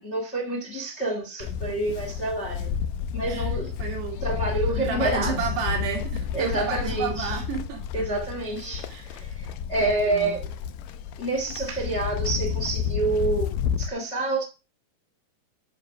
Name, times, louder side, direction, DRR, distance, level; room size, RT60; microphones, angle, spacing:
voice 1, 0.0-2.7 3.1-3.7 4.2-5.3 6.3-7.4 7.9-10.5 11.2-13.5 13.8-14.4, right 2 dB, 25° left, 3 dB, 1.6 m, -28 dB
Livestock farm animals working animals, 1.4-13.9, left 8 dB, 80° left, 2.0 m, -31 dB
voice 2, 3.8-4.2 4.8-8.1 8.9-9.2 9.9-10.3, right 6 dB, 85° right, 2 dB, 4.7 m, -32 dB
10.0 x 5.1 x 5.9 m, 0.31 s
omnidirectional pair, 4.6 m